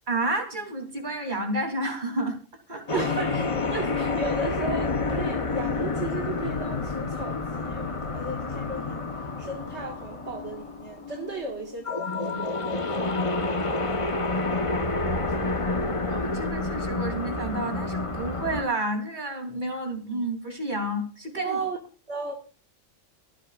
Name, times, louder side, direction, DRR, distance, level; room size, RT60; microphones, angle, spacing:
voice 1, 0.1-2.4 2.7-3.0 16.1-21.6, right 1 dB, 35° right, 4 dB, 3.4 m, -30 dB
sound 1, 2.9-18.6, left 3 dB, 25° left, 1.0 m, -29 dB
voice 2, 2.9-13.2 13.6-14.5 15.2-15.8 21.4-21.8 22.1-22.3, right 3 dB, 60° right, 1 dB, 2.1 m, -36 dB
24.5 x 8.3 x 2.4 m, 0.35 s
omnidirectional pair, 1.3 m